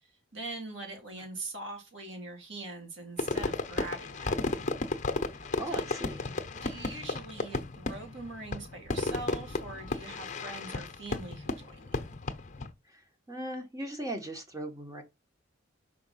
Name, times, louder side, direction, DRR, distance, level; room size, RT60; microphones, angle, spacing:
voice 1, 0.0-4.6 5.7-5.9 6.6-12.2, right 2 dB, 65° right, 3.2 m, -42 dB
Fireworks, 3.2-12.7, left 2 dB, 35° left, 0.9 m, -34 dB
voice 2, 5.4-6.2 12.9-13.0 13.3-15.0, right 1 dB, 15° right, 1.5 m, -38 dB
5.9 x 4.6 x 5.8 m
head